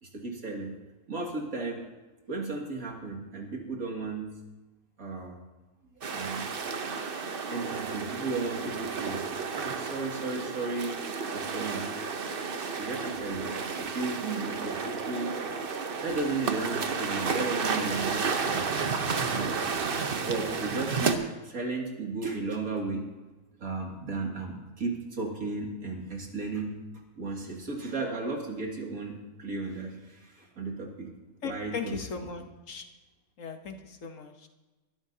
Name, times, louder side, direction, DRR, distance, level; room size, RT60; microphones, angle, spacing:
voice 1, 0.0-0.8 1.1-1.9 2.3-4.4 5.0-5.4 6.1-6.5 7.5-9.2 9.5-11.0 11.3-11.8 12.8-13.5 13.8-15.3 16.0-18.7 19.3-19.6 20.2-23.1 23.6-26.7 27.1-31.1 31.4-32.0 32.3-32.4, right 3 dB, 65° right, 0 dB, 2.8 m, -34 dB
sound 1, 6.0-21.1, right 5 dB, 45° right, 0.9 m, -32 dB
voice 2, 31.4-32.8 33.4-34.5, left 5 dB, 60° left, 6 dB, 1.4 m, -38 dB
21.5 x 12.5 x 2.8 m, 1.1 s
omnidirectional pair, 1.6 m